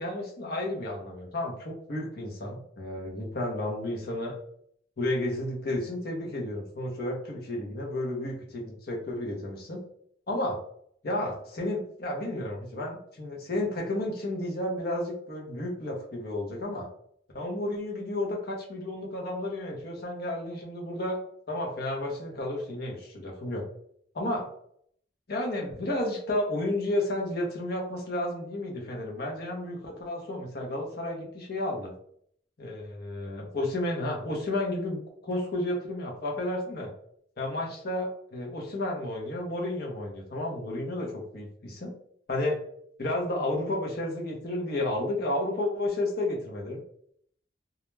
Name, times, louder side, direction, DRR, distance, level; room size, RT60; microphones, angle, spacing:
voice 1, 0.0-4.3 5.0-8.6 8.9-9.8 10.3-10.6 11.0-16.9 17.3-21.2 21.5-23.6 24.1-24.5 25.3-31.9 32.6-36.9 37.4-41.9 42.3-42.6 43.0-46.8, left 1 dB, 60° left, 0 dB, 0.7 m, -32 dB
2.3 x 2.1 x 3.1 m, 0.65 s
head